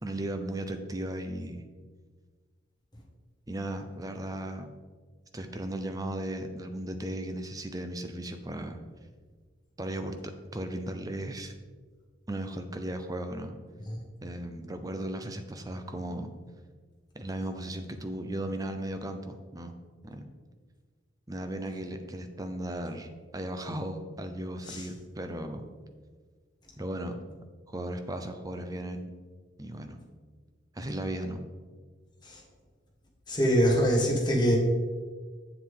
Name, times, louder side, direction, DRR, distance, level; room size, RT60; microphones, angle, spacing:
voice 1, 0.0-1.6 3.5-4.7 5.3-8.8 9.8-11.5 12.3-13.6 14.2-16.3 17.1-19.7 20.0-20.3 21.3-25.6 26.8-27.2 27.7-29.1 29.6-30.0 30.7-31.4, right 1 dB, 20° right, 7 dB, 0.6 m, -36 dB
voice 2, 33.3-34.6, equal, 20° left, -2 dB, 1.7 m, -24 dB
8.0 x 7.3 x 3.7 m, 1.5 s
head